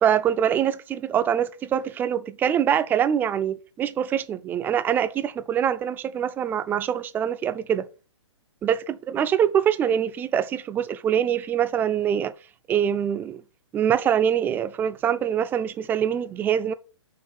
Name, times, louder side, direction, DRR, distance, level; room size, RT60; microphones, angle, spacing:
voice 1, 0.0-7.9 8.6-12.3 12.7-13.4 13.7-16.7, right 9 dB, 10° right, 0.4 m, -24 dB
5.6 x 3.6 x 5.5 m
hypercardioid pair, 130°, 15 cm